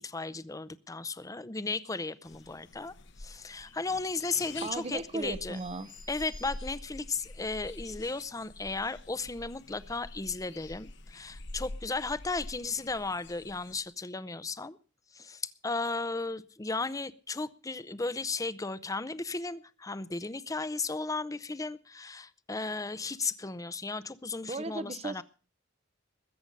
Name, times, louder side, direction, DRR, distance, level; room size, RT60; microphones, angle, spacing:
voice 1, 0.0-2.9 3.2-5.6 6.1-14.8 15.1-25.2, left 3 dB, 15° left, 0.6 m, -35 dB
sound 1, 2.2-13.8, left 2 dB, 60° left, 1.0 m, -47 dB
voice 2, 4.6-5.9 24.5-25.2, right 3 dB, 30° right, 0.6 m, -36 dB
sound 2, 5.5-7.3, right 2 dB, 90° right, 4.3 m, -56 dB
21.5 x 7.9 x 5.3 m
head